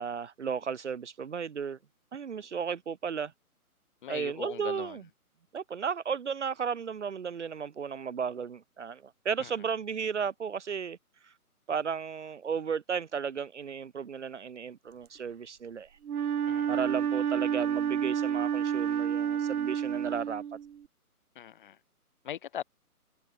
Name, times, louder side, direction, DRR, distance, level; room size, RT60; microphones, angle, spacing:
voice 1, 0.0-1.8 2.1-3.3 4.1-5.0 5.5-11.0 11.2-11.3 11.7-15.9 16.7-20.4, right 6 dB, 50° right, 1.7 m, -34 dB
voice 2, 4.0-5.0 9.4-9.5 16.5-16.8 21.3-21.8 22.2-22.6, left 10 dB, 35° left, 4.4 m, -40 dB
Wind instrument woodwind instrument, 16.0-20.8, right 8 dB, 75° right, 0.7 m, -29 dB
figure-of-eight pair, 155°, 45 cm